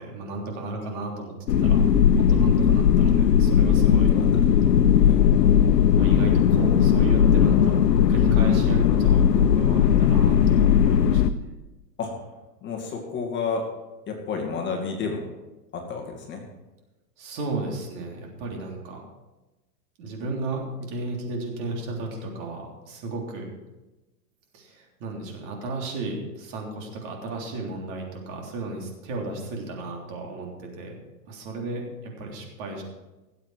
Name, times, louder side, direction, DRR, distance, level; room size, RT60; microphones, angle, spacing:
voice 1, 0.0-1.3 1.6-1.9 2.2-4.1 6.0-7.8 8.1-11.2 17.2-19.0 20.0-23.5 24.5-31.0 31.3-32.8, right 2 dB, 50° right, 0 dB, 3.5 m, -34 dB
sound 1, 1.5-11.3, left 8 dB, 90° left, 0.9 m, -18 dB
voice 2, 3.9-4.3 5.0-5.2 12.0-12.3 12.6-13.7 14.1-15.3 15.7-16.4, left 5 dB, 25° left, 0 dB, 2.2 m, -31 dB
18.0 x 7.9 x 4.9 m, 1.1 s
hypercardioid pair, 140°, 47 cm